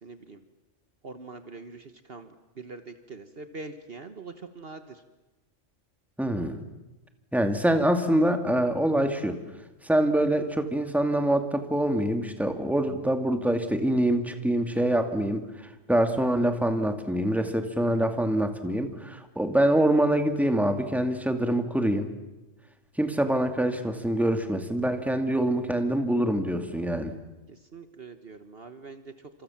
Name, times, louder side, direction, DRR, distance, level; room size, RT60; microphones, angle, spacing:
voice 1, 0.0-0.4 1.0-5.0 27.5-29.3, right 3 dB, 50° right, 9 dB, 1.5 m, -43 dB
voice 2, 6.2-6.6 7.3-9.4 9.8-22.1 23.0-27.1, right 1 dB, ahead, 6 dB, 2.3 m, -25 dB
29.5 x 27.0 x 7.3 m, 1.1 s
omnidirectional pair, 1.3 m